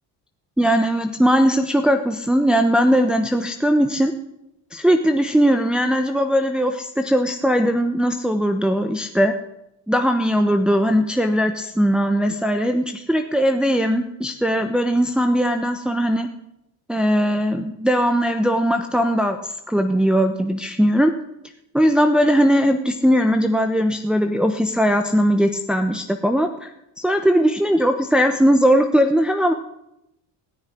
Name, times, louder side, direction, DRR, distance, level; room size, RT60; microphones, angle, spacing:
voice 1, 0.6-4.1 4.7-9.3 9.9-16.3 16.9-21.1 21.7-26.7 27.0-29.5, equal, ahead, 5 dB, 1.0 m, -19 dB
18.5 x 6.5 x 9.9 m, 0.85 s
cardioid pair, 105°, 44 cm